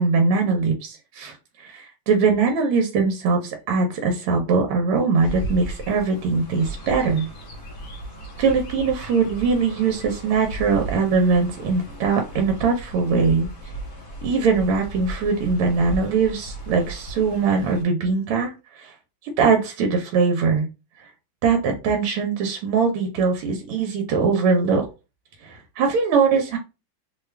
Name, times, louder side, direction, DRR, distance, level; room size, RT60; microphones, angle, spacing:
voice 1, 0.0-7.3 8.4-13.5 14.2-18.9 19.4-20.7 21.4-24.9 25.4-26.6, right 4 dB, 80° right, 3 dB, 1.5 m, -21 dB
Chirp tweet, 5.2-17.8, right 2 dB, 50° left, 1.1 m, -35 dB
3.4 x 2.3 x 3.2 m, 0.29 s
omnidirectional pair, 2.4 m